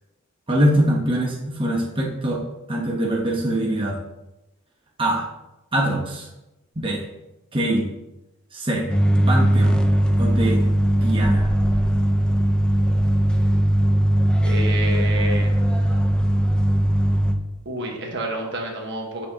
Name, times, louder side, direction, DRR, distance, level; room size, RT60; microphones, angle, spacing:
voice 1, 0.5-2.4 2.7-4.0 5.0-5.3 5.7-6.3 6.7-7.0 7.5-7.9 8.5-8.9 9.3-9.8 10.2-10.6 11.0-11.5, right 1 dB, 25° right, -2 dB, 1.0 m, -23 dB
sound 1, 8.9-17.3, equal, 5° left, 0.6 m, -19 dB
voice 2, 14.4-15.5 17.6-19.3, right 1 dB, 60° right, 1 dB, 1.3 m, -29 dB
8.3 x 6.6 x 2.8 m, 0.95 s
head